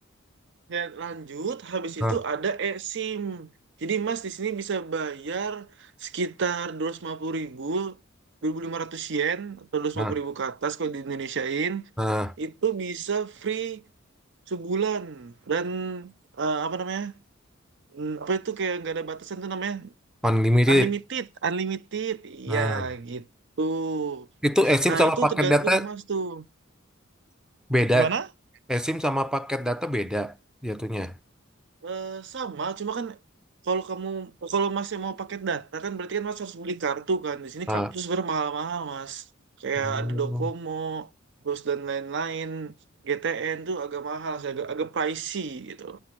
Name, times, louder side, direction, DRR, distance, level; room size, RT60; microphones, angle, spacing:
voice 1, 0.7-3.5 3.8-7.9 8.4-11.9 12.4-13.8 14.5-17.2 17.9-19.9 20.7-23.3 23.6-24.3 24.9-26.4 27.9-28.3 31.8-33.2 33.6-39.2 39.6-41.1 41.4-42.7 43.0-46.0, right 5 dB, 60° right, 0.6 m, -30 dB
voice 2, 12.0-12.3 20.2-20.9 22.5-22.8 24.4-25.9 27.7-28.1 28.7-30.3 30.6-31.1 37.7-37.9 39.8-40.5, equal, 5° right, 0.6 m, -23 dB
9.2 x 6.1 x 7.4 m
head